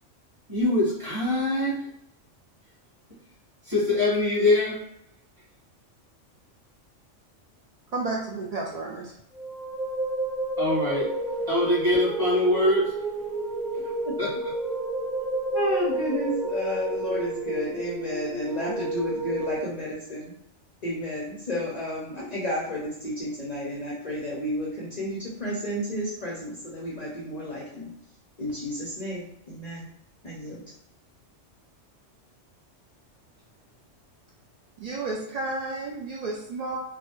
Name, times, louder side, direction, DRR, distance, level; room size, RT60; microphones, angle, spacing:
voice 1, 0.5-1.8 3.7-4.8 10.6-11.1 11.5-12.9 14.2-14.3, left 2 dB, 20° right, -9 dB, 1.5 m, -23 dB
voice 2, 7.9-9.1 34.8-36.8, right 3 dB, 75° right, -2 dB, 0.3 m, -32 dB
sound 1, 9.3-19.6, right 2 dB, 40° right, 1.4 m, -30 dB
voice 3, 15.5-20.3 20.8-27.9 28.4-29.9 30.2-30.6, equal, 40° left, -5 dB, 0.7 m, -31 dB
3.1 x 2.4 x 3.0 m, 0.76 s
omnidirectional pair, 1.2 m